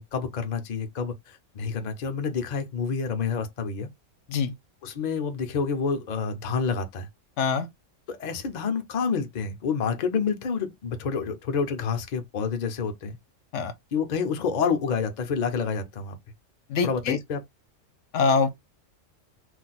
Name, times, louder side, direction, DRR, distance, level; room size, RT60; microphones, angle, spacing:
voice 1, 0.0-3.9 4.8-7.1 8.1-13.2 13.9-16.2 16.8-17.4, left 5 dB, 50° left, 0.5 m, -28 dB
voice 2, 16.7-17.2 18.1-18.5, left 5 dB, 70° left, 0.9 m, -24 dB
2.5 x 2.2 x 4.0 m
omnidirectional pair, 1.3 m